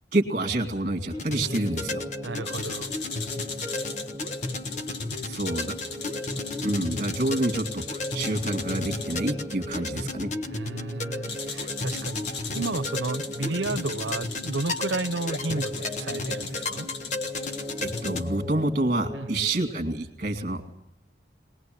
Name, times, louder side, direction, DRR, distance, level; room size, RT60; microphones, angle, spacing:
voice 1, 0.1-2.0 5.2-5.7 6.6-7.8 8.1-10.3 17.8-20.7, right 2 dB, 45° right, 2.4 m, -27 dB
sound 1, 1.1-18.2, left 2 dB, 40° left, 1.3 m, -34 dB
sound 2, 1.2-20.0, left 1 dB, 10° right, 1.3 m, -40 dB
voice 2, 2.2-3.0 5.2-5.3 10.4-16.9 19.1-19.3, right 3 dB, 85° right, 1.0 m, -32 dB
sound 3, 2.4-9.2 11.3-18.3, left 5 dB, 70° left, 1.9 m, -39 dB
22.5 x 20.0 x 7.9 m
head